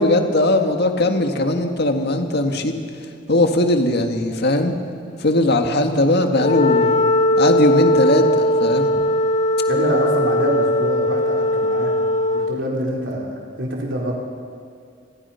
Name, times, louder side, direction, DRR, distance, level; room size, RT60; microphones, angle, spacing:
voice 1, 0.0-2.8 3.3-4.7 5.2-6.9 7.4-9.0, left 1 dB, 60° left, 5 dB, 1.9 m, -19 dB
Wind instrument woodwind instrument, 6.3-12.6, left 1 dB, 40° left, 0.6 m, -19 dB
voice 2, 9.7-11.9 12.3-13.3 13.6-14.1, right 1 dB, 70° right, -2 dB, 4.2 m, -25 dB
29.0 x 21.5 x 5.8 m, 2.3 s
head